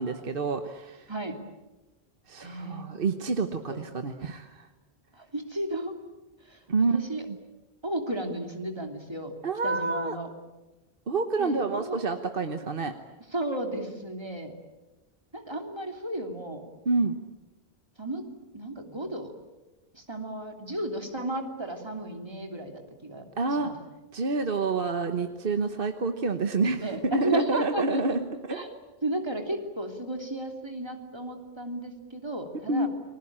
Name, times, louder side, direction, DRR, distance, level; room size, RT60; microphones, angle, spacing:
voice 1, 0.0-1.1 2.3-4.7 6.7-7.0 7.3-7.4 9.4-10.2 11.1-12.9 16.8-17.1 23.4-23.7 24.1-28.6 32.7-32.9, right 3 dB, 60° right, 7 dB, 1.4 m, -28 dB
voice 2, 2.4-2.9 3.7-3.8 5.1-6.0 6.5-6.6 6.9-7.2 7.8-9.3 9.6-10.3 11.4-12.0 13.3-14.5 15.3-16.7 18.0-18.2 18.5-19.3 19.9-23.2 23.5-23.7 26.8-28.2 28.5-28.7 29.0-32.9, right 1 dB, 25° right, 4 dB, 3.1 m, -34 dB
30.0 x 21.0 x 8.8 m, 1.1 s
omnidirectional pair, 1.1 m